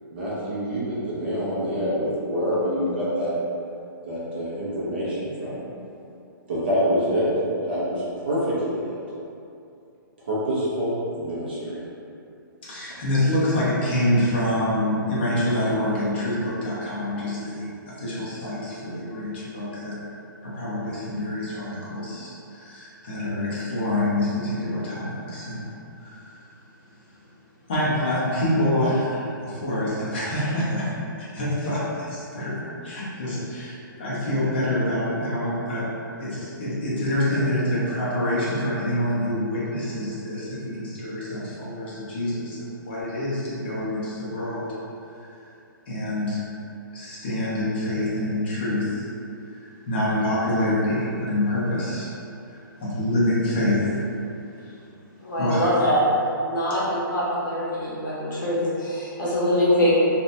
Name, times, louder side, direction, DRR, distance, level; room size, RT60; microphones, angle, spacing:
voice 1, 0.1-3.3 4.1-5.6 6.5-7.3 7.7-9.0 10.2-11.8, equal, 30° right, -8 dB, 0.4 m, -26 dB
voice 2, 12.6-20.0 20.4-25.6 26.0-26.3 27.7-30.9 31.2-35.9 36.2-44.7 45.1-45.3 45.9-46.4 46.9-49.1 49.5-52.1 52.5-54.0 54.6-54.7 55.4-55.7, left 1 dB, 30° left, -9 dB, 0.6 m, -26 dB
voice 3, 55.2-56.0 56.4-59.9, equal, 60° left, -8 dB, 0.9 m, -23 dB
2.7 x 2.1 x 2.5 m, 2.6 s
hypercardioid pair, 180°, 12 cm